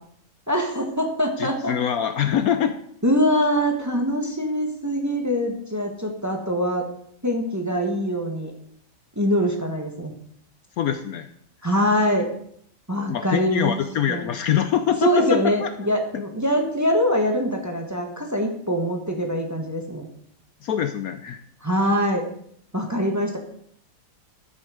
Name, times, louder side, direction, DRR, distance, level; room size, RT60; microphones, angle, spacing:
voice 1, 0.5-1.7 3.0-6.9 7.2-8.5 9.2-10.1 11.6-12.3 12.9-13.8 14.1-14.2 15.0-20.1 21.6-22.3 22.7-23.4, equal, 10° right, 2 dB, 1.3 m, -23 dB
voice 2, 1.4-2.8 10.8-11.3 13.1-15.7 20.6-21.4, left 9 dB, 65° left, 8 dB, 1.0 m, -24 dB
12.5 x 6.4 x 5.0 m, 0.66 s
omnidirectional pair, 1.8 m